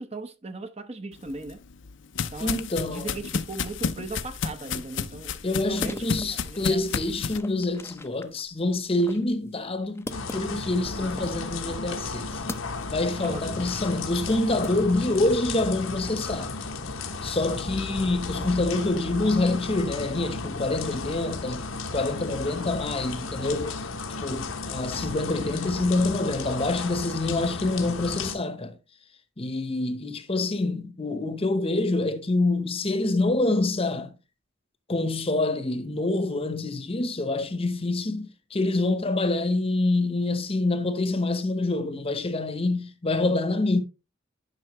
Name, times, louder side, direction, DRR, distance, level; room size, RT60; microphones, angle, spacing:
voice 1, 0.0-1.6 2.3-2.6 2.9-5.3 5.7-7.0 13.2-13.8, right 3 dB, 30° right, 0.8 m, -38 dB
sound 1, 1.3-7.4, left 6 dB, 65° left, 0.6 m, -32 dB
voice 2, 2.4-3.2 5.4-12.4 12.8-16.5 17.2-21.7 21.9-23.8 24.2-28.8 29.4-34.1 34.9-43.8, left 2 dB, 30° left, 0.9 m, -26 dB
sound 2, 5.7-15.3 15.6-16.4, left 1 dB, 15° left, 0.6 m, -43 dB
sound 3, 10.1-28.4, left 3 dB, 85° left, 1.1 m, -34 dB
10.5 x 5.6 x 3.1 m
head